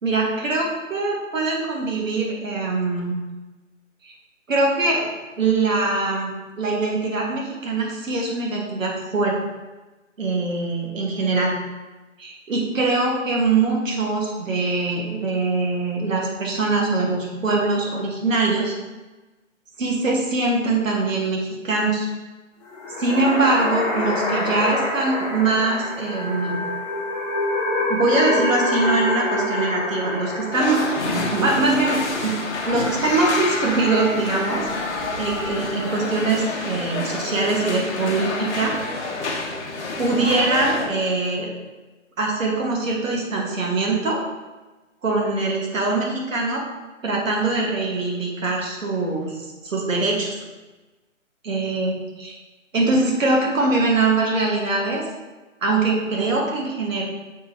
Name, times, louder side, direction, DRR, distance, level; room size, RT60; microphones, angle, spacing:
voice 1, 0.0-3.2 4.0-4.1 4.5-9.4 10.2-11.6 12.2-18.7 19.8-21.4 21.6-22.1 23.0-26.6 27.9-30.8 31.3-32.4 32.6-34.6 35.2-38.7 40.0-41.5 42.2-44.2 45.0-46.6 47.0-49.3 49.6-50.4 51.4-52.3 52.7-55.0 55.6-57.0, right 3 dB, 80° right, -1 dB, 1.8 m, -22 dB
sound 1, 22.6-36.0, left 1 dB, 25° left, 1.2 m, -27 dB
sound 2, 30.5-40.9, left 3 dB, 60° left, 1.4 m, -28 dB
6.5 x 5.2 x 2.9 m, 1.2 s
hypercardioid pair, 160°, 39 cm